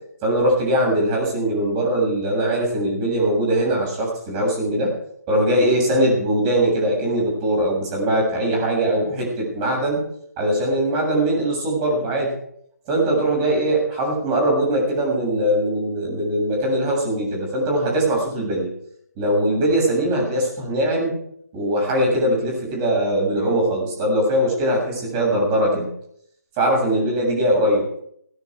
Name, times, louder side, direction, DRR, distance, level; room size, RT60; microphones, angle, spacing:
voice 1, 0.2-4.9 5.3-10.0 10.4-12.3 12.9-18.7 19.2-21.2 21.5-25.9 26.6-27.8, right 1 dB, 25° right, 0 dB, 7.5 m, -21 dB
18.0 x 12.0 x 4.9 m, 0.69 s
figure-of-eight pair, 145°, 9 cm